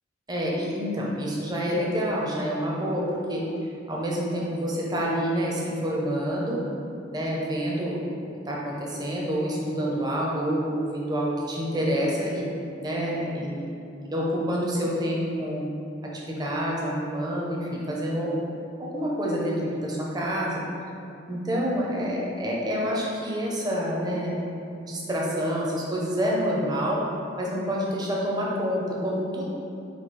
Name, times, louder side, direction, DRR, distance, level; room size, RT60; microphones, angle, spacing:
voice 1, 0.3-3.4 3.9-6.6 7.1-8.0 8.5-12.4 12.8-13.7 14.1-15.7 16.1-18.3 18.8-20.6 21.3-24.4 24.9-27.0 27.4-29.5, equal, 20° right, -4 dB, 0.6 m, -27 dB
4.2 x 2.4 x 4.5 m, 2.6 s
head